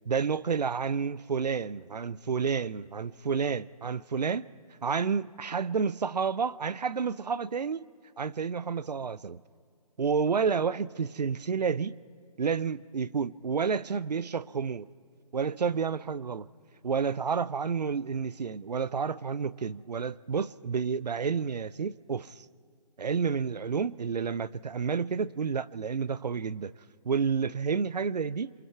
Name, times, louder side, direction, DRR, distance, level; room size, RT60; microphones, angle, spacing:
voice 1, 0.1-4.5 4.8-7.9 8.2-9.4 10.0-12.0 12.4-14.9 15.3-16.5 16.8-22.5 23.0-26.7 27.0-28.5, right 6 dB, 80° right, 0.6 m, -30 dB
28.5 x 24.0 x 4.7 m
figure-of-eight pair, 160°, 21 cm